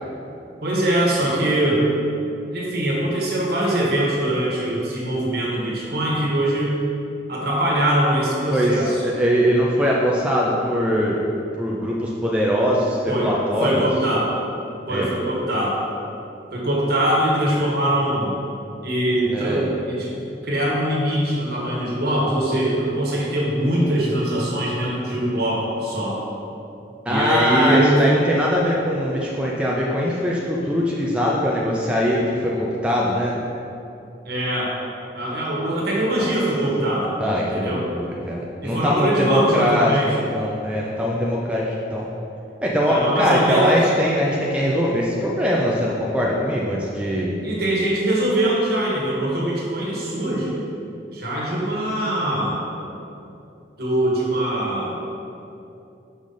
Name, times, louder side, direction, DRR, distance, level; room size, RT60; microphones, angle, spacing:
voice 1, 0.6-1.9 2.5-6.7 7.3-8.9 13.1-13.3 13.6-14.3 14.9-15.7 16.5-18.4 18.8-26.2 27.1-28.0 34.2-34.7 35.1-37.1 37.5-37.8 38.6-40.1 42.9-43.8 47.4-50.5 51.1-52.6 53.8-54.9, right 1 dB, 60° right, -4 dB, 1.4 m, -22 dB
voice 2, 8.5-11.2 11.6-13.8 14.9-15.1 19.3-19.7 27.1-33.4 36.2-36.3 37.2-42.1 42.6-47.3, equal, 5° right, -4 dB, 0.4 m, -22 dB
5.5 x 4.9 x 3.8 m, 2.7 s
head